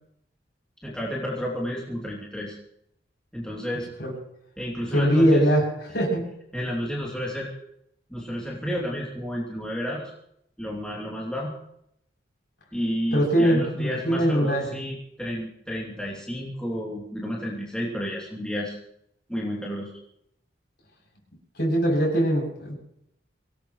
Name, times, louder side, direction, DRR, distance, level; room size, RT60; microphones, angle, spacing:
voice 1, 0.8-2.6 3.3-3.9 4.6-5.4 6.5-7.5 8.1-10.1 10.6-11.5 12.7-18.8 19.3-19.9, equal, 5° left, -5 dB, 2.9 m, -31 dB
voice 2, 4.9-6.3 13.1-14.7 21.6-22.8, equal, 55° left, -2 dB, 7.8 m, -22 dB
24.5 x 18.5 x 3.2 m, 0.76 s
head